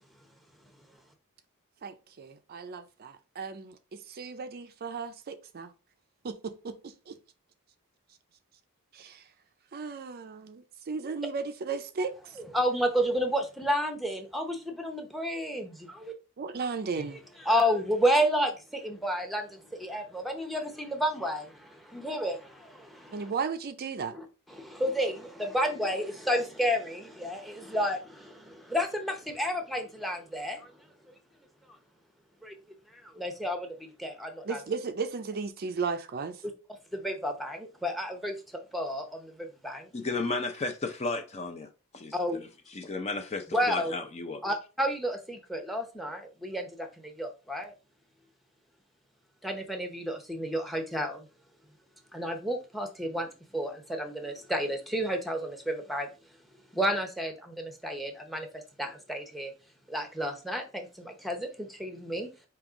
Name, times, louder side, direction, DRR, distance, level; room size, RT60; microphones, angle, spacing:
voice 1, 1.8-3.8 4.1-5.7 6.2-7.2 8.9-9.2 9.7-12.1 16.4-17.2 23.1-24.1 34.5-36.4, right 5 dB, 45° right, 0.5 m, -35 dB
voice 2, 12.4-16.1 17.0-23.3 24.1-31.1 32.4-32.6 32.9-34.6 36.9-39.9 42.1-42.4 43.5-43.9 44.4-47.7 49.4-51.3 52.1-56.1 56.7-59.5 59.9-62.3, equal, ahead, 0.8 m, -31 dB
voice 3, 39.9-42.1 42.7-44.4, left 3 dB, 30° left, 0.5 m, -33 dB
5.3 x 2.8 x 3.5 m
head